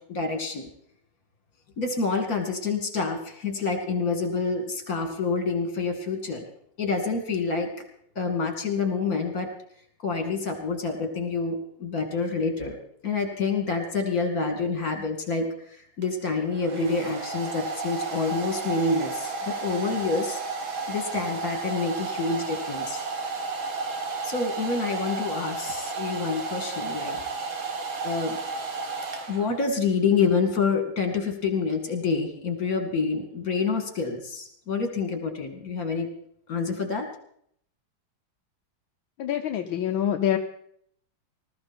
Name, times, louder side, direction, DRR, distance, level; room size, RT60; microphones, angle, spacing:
voice 1, 0.1-0.7 1.8-6.5 6.8-7.7 8.2-9.5 10.0-12.8 13.0-20.4 20.9-23.0 24.2-27.2 28.0-28.4 29.3-36.1 36.5-37.1, left 4 dB, 45° left, 5 dB, 2.9 m, -27 dB
Domestic sounds home sounds, 16.0-29.7, right 4 dB, 80° right, 2.8 m, -33 dB
voice 2, 39.2-40.4, left 10 dB, 80° left, 5 dB, 1.6 m, -25 dB
19.5 x 14.0 x 4.4 m, 0.66 s
omnidirectional pair, 2.2 m